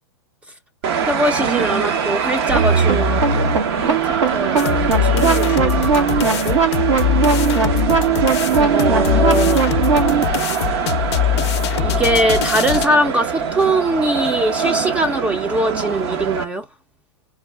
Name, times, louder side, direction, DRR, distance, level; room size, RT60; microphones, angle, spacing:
sound 1, 0.8-16.4, right 6 dB, 60° right, 0.9 m, -23 dB
voice 1, 1.0-4.0 4.3-6.6 8.7-9.6 11.8-16.7, right 1 dB, 10° right, 0.5 m, -22 dB
sound 2, 2.5-10.3, right 6 dB, 80° right, 1.4 m, -19 dB
sound 3, 4.6-12.9, left 12 dB, 65° left, 0.5 m, -22 dB
3.6 x 2.3 x 3.3 m
hypercardioid pair, 135°, 15 cm